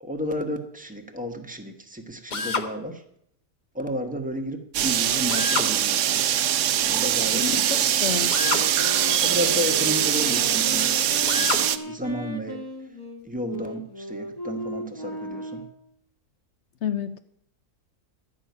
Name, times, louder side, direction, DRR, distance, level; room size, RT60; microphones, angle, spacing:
voice 1, 0.0-3.0 3.7-6.2 6.7-7.9 9.2-10.9 11.4-12.6 13.2-15.7, equal, 5° right, 4 dB, 1.2 m, -32 dB
Drill, 2.3-2.7 5.3-5.7 8.3-8.7 11.3-11.7, left 4 dB, 35° left, 0.9 m, -27 dB
sound 1, 4.7-11.8, right 10 dB, 65° right, 0.9 m, -23 dB
voice 2, 7.4-8.3 16.8-17.2, left 8 dB, 65° left, 11 dB, 0.8 m, -29 dB
sound 2, 8.3-15.8, equal, 15° left, 1.3 m, -36 dB
12.0 x 6.1 x 9.4 m, 0.72 s
omnidirectional pair, 1.6 m